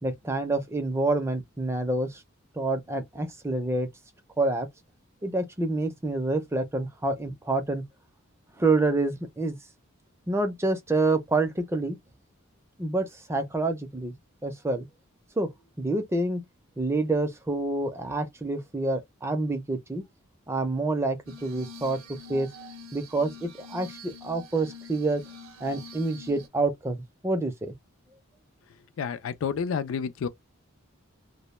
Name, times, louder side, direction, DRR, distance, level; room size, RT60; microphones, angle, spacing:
voice 1, 0.0-2.2 2.6-3.9 4.4-4.7 5.2-7.9 8.6-9.6 10.3-12.0 12.8-14.1 14.4-14.9 15.4-16.4 16.8-20.0 20.5-22.5 22.9-25.2 25.6-27.0 27.2-27.7, right 2 dB, 15° right, 0.4 m, -27 dB
Glass, 21.3-26.5, left 1 dB, 85° right, 0.6 m, -45 dB
voice 2, 29.0-30.3, left 6 dB, 70° left, 0.3 m, -29 dB
2.0 x 2.0 x 3.0 m
head